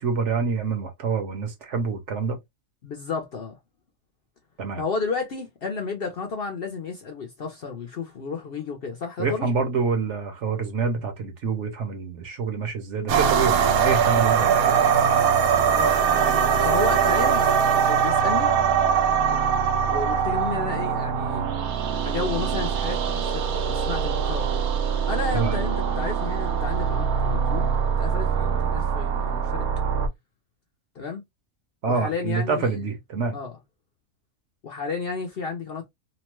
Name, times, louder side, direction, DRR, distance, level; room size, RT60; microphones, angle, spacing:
voice 1, 0.0-2.4 4.6-4.8 9.2-14.8 25.3-25.6 31.8-33.4, right 5 dB, 60° right, 1.0 m, -27 dB
voice 2, 2.8-3.6 4.8-9.5 15.7-16.0 16.6-17.5 17.8-18.5 19.9-21.5 22.0-24.6 25.1-29.7 31.0-31.2 31.9-32.9 33.3-33.6 34.6-35.9, left 4 dB, 55° left, 0.7 m, -32 dB
sound 1, 13.1-30.1, right 7 dB, 85° right, 1.1 m, -22 dB
2.9 x 2.1 x 2.9 m
omnidirectional pair, 1.5 m